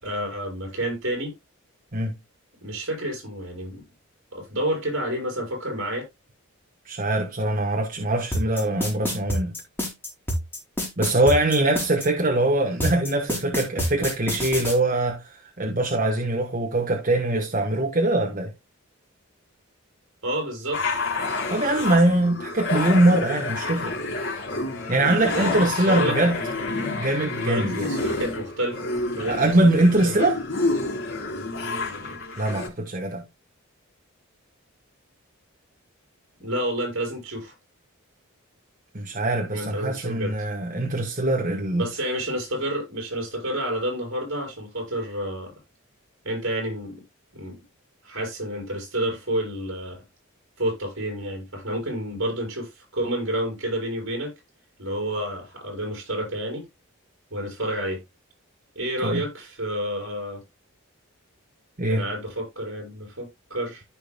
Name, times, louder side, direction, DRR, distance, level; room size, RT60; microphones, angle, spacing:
voice 1, 0.0-1.3 2.6-3.8 4.3-6.0 20.2-20.8 25.3-26.2 27.4-29.6 30.0-30.1 36.4-37.5 39.5-40.3 41.8-45.5 46.2-47.0 47.3-47.6 48.0-50.0 50.6-54.3 54.8-56.6 57.3-58.0 58.7-60.4 61.9-63.8, right 1 dB, 60° right, 5.7 m, -29 dB
voice 2, 6.8-9.6 11.0-18.5 21.5-23.9 24.9-26.4 27.0-27.9 29.3-30.4 32.4-33.2 38.9-41.9 59.0-59.2 61.8-62.1, right 1 dB, 40° right, 1.2 m, -22 dB
sound 1, 8.3-12.1 12.8-14.8, equal, 10° left, 3.4 m, -27 dB
sound 2, 20.7-32.7, left 3 dB, 60° left, 3.7 m, -29 dB
14.5 x 5.2 x 2.2 m
head